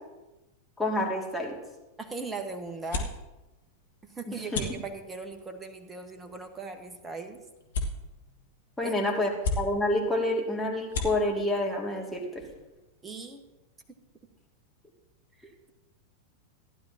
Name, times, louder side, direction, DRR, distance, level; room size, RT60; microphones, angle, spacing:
voice 1, 0.8-1.6 4.3-4.6 8.8-9.3 9.6-12.4, left 1 dB, 5° left, -2 dB, 2.3 m, -28 dB
sound 1, 1.5-13.0, left 3 dB, 60° left, 1.6 m, -39 dB
voice 2, 2.0-3.1 4.0-7.4 8.8-9.0 13.0-13.4 15.4-15.7, right 4 dB, 15° right, 6 dB, 1.4 m, -39 dB
15.5 x 11.0 x 2.9 m, 1.0 s
figure-of-eight pair, 90°, 0 cm